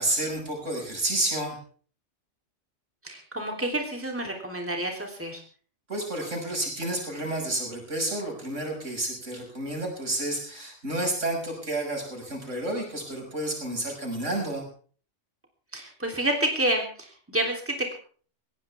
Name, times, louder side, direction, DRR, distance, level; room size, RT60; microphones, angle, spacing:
voice 1, 0.0-1.6 5.9-14.7, right 1 dB, 85° right, 1 dB, 6.5 m, -30 dB
voice 2, 3.0-5.4 15.7-17.9, right 1 dB, 10° right, 1 dB, 3.3 m, -29 dB
19.5 x 17.0 x 3.5 m, 0.43 s
omnidirectional pair, 1.3 m